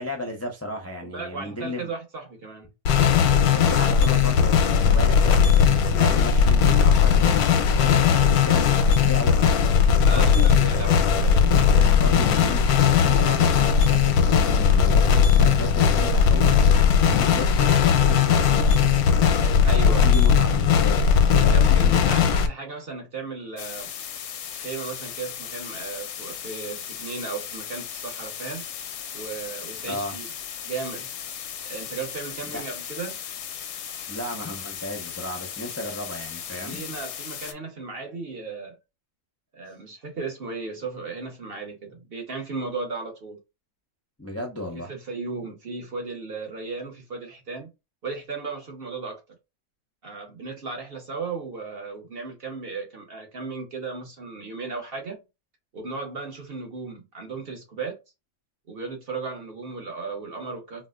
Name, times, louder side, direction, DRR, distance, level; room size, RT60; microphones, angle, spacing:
voice 1, 0.0-1.9 3.5-9.6 10.1-10.7 11.7-16.6 17.0-18.9 19.7-22.1 29.8-30.2 32.5-32.6 34.1-36.9 44.2-44.9, left 1 dB, 20° left, 0.4 m, -34 dB
voice 2, 1.0-2.7 10.0-11.8 19.6-20.1 21.3-23.9 24.6-28.6 29.1-30.3 30.6-31.1 31.6-33.2 36.6-38.8 39.5-43.4 44.7-47.7 48.0-49.2 50.0-55.2 55.7-58.0 58.7-60.9, right 4 dB, 45° right, 1.0 m, -35 dB
sound 1, 2.9-22.5, left 7 dB, 85° left, 1.1 m, -18 dB
sound 2, 23.6-37.5, left 8 dB, 65° left, 0.8 m, -37 dB
4.1 x 2.4 x 2.3 m
omnidirectional pair, 1.6 m